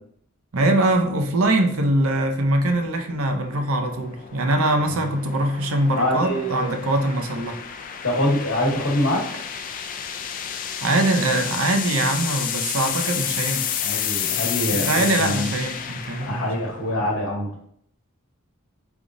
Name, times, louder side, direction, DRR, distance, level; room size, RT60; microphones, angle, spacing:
voice 1, 0.5-7.6 10.8-13.7 14.7-16.5, right 1 dB, 75° right, 5 dB, 0.6 m, -22 dB
sound 1, 1.0-17.2, left 9 dB, 40° left, 0.3 m, -31 dB
voice 2, 5.9-6.8 8.0-9.3 13.8-15.5 16.3-17.5, left 1 dB, 70° left, 0 dB, 1.1 m, -24 dB
4.8 x 3.4 x 2.6 m, 0.66 s
head